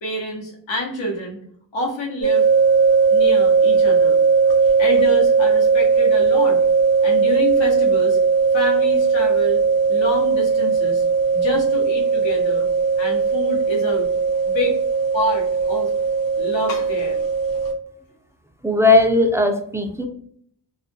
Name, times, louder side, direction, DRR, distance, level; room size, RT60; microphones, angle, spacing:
voice 1, 0.0-1.4 1.7-2.5 3.1-4.2 4.8-6.6 7.0-8.2 8.5-9.6 9.9-11.0 11.3-12.7 13.0-14.1 14.4-14.8 15.1-15.9 16.4-17.2, equal, 85° left, -2 dB, 0.9 m, -27 dB
sound 1, 2.2-17.7, right 5 dB, 50° left, 0.7 m, -18 dB
voice 2, 18.6-20.1, left 2 dB, 5° right, 3 dB, 0.3 m, -17 dB
2.4 x 2.2 x 2.5 m, 0.64 s
cardioid pair, 65°, 44 cm